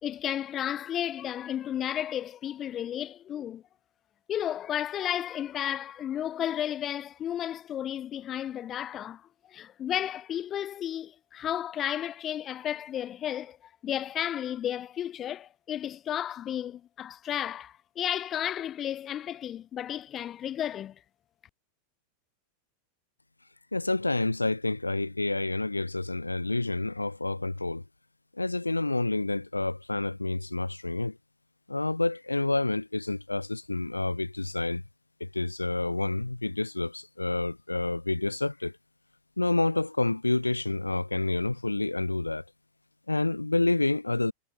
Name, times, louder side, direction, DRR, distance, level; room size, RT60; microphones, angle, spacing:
voice 1, 0.0-3.6 4.3-9.2 9.5-13.6 13.8-20.9, left 10 dB, 30° left, 3.0 m, -33 dB
voice 2, 23.7-27.8 28.4-31.2 31.7-34.8 35.2-38.7 39.4-42.4 43.1-44.3, left 2 dB, 85° left, 3.0 m, -28 dB
figure-of-eight pair, 90°, 0 cm